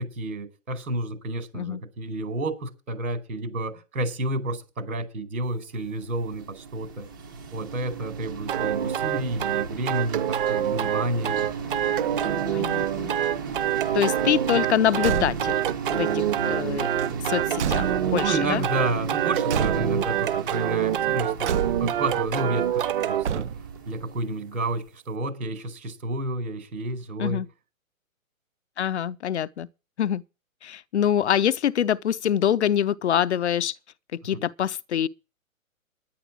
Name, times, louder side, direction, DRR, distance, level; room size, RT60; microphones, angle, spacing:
voice 1, 0.0-7.1 7.5-11.5 18.2-23.4 23.8-27.4 34.3-34.4, right 2 dB, 75° right, 4.9 m, -30 dB
sound 1, 5.8-24.8, right 5 dB, 15° right, 0.6 m, -36 dB
sound 2, 8.5-23.2, right 11 dB, 40° right, 1.0 m, -26 dB
voice 2, 12.5-13.1 13.9-15.6 15.9-16.9 17.3-17.9 18.1-18.6 27.2-27.5 28.8-29.7 30.0-30.2 30.6-33.7 34.1-35.1, left 9 dB, 55° left, 0.6 m, -25 dB
Car / Truck / Slam, 14.9-15.7 16.9-18.4 19.5-20.2 21.4-22.1 23.2-23.9, right 7 dB, 55° right, 0.6 m, -30 dB
10.5 x 10.0 x 6.2 m
hypercardioid pair, 160°, 42 cm